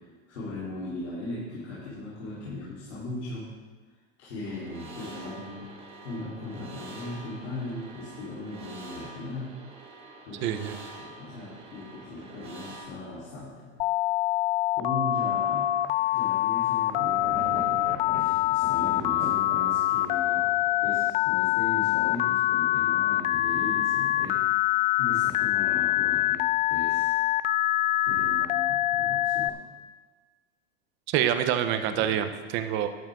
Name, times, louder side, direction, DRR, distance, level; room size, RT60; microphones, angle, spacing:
voice 1, 0.3-3.5 4.2-5.7 6.0-9.5 10.3-10.7 11.0-13.7 14.7-15.7 16.1-17.7 18.1-20.4 20.8-24.6 25.0-27.1 28.0-29.6 31.7-32.2, left 2 dB, 85° left, -9 dB, 4.0 m, -38 dB
sound 1, 4.4-12.9, right 2 dB, 15° right, 1.6 m, -46 dB
voice 2, 10.4-10.8 31.1-32.9, right 10 dB, 35° right, 8 dB, 0.8 m, -26 dB
Telephone, 13.8-29.5, left 15 dB, 45° left, 0.4 m, -25 dB
Thunder, 15.2-21.6, equal, 10° left, 3.0 m, -43 dB
12.5 x 11.5 x 3.7 m, 1.4 s
supercardioid pair, 155°, 35 cm